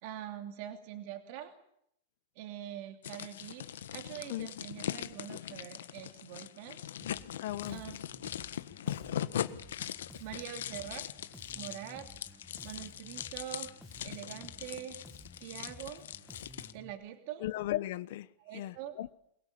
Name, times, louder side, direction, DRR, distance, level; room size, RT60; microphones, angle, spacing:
voice 1, 0.0-1.5 2.3-6.9 7.7-8.0 10.2-11.0 11.5-13.7 14.0-15.0 15.4-16.0 16.7-17.5 18.4-18.9, right 11 dB, 40° right, 2.8 m, -44 dB
sound 1, 3.0-16.7, left 10 dB, 90° left, 1.5 m, -41 dB
Bass guitar, 7.0-16.9, left 2 dB, ahead, 1.5 m, -54 dB
voice 2, 7.4-7.8 17.4-18.3 18.5-19.1, left 15 dB, 50° left, 0.9 m, -36 dB
23.5 x 22.5 x 8.7 m
supercardioid pair, 175°, 0 cm